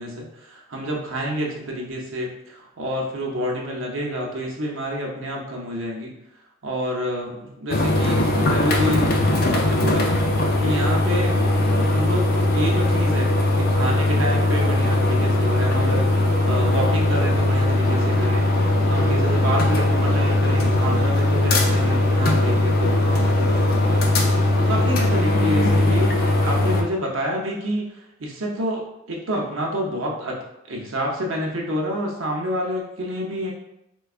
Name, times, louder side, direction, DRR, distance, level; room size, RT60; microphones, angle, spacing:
voice 1, 0.0-6.1 6.6-9.1 9.5-10.1 10.6-11.4 11.8-18.5 18.9-24.1 24.6-26.1 26.4-27.9 28.2-28.8 29.1-30.4 30.7-33.5, equal, 75° right, -1 dB, 0.8 m, -28 dB
sound 1, 7.7-26.8, left 1 dB, 45° left, 0.4 m, -19 dB
4.5 x 2.2 x 2.4 m, 0.85 s
head